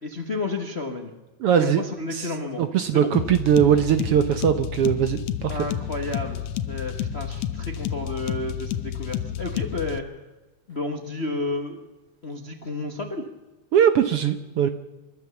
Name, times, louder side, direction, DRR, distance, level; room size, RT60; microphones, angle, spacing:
voice 1, 0.0-1.1 1.6-2.6 2.9-3.1 5.5-10.1 10.7-11.8 12.2-13.3, left 2 dB, 35° left, 5 dB, 1.0 m, -31 dB
voice 2, 1.4-1.8 2.1-2.3 2.6-5.6 13.7-14.7, right 9 dB, 65° right, 9 dB, 1.6 m, -20 dB
sound 1, 3.1-10.0, left 10 dB, 75° left, 2.1 m, -30 dB
27.5 x 13.5 x 7.1 m, 1.1 s
omnidirectional pair, 3.3 m